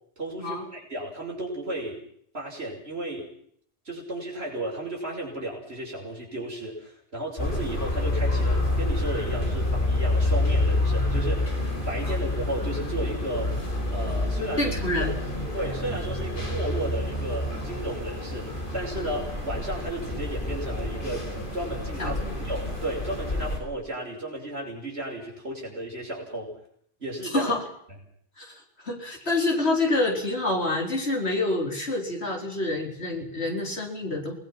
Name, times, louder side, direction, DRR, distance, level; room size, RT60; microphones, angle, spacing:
voice 1, 0.2-2.0 2.3-3.3 3.8-13.6 13.9-15.1 15.5-22.2 22.4-26.6 27.0-27.5, right 1 dB, 75° right, -2 dB, 6.1 m, -34 dB
sound 1, 7.4-23.6, left 2 dB, 55° left, 5.3 m, -28 dB
voice 2, 14.6-15.1 22.0-22.3 27.3-27.6 28.4-28.5 28.8-34.3, left 2 dB, 80° left, 0 dB, 4.9 m, -27 dB
28.0 x 19.5 x 6.0 m, 0.65 s
omnidirectional pair, 1.1 m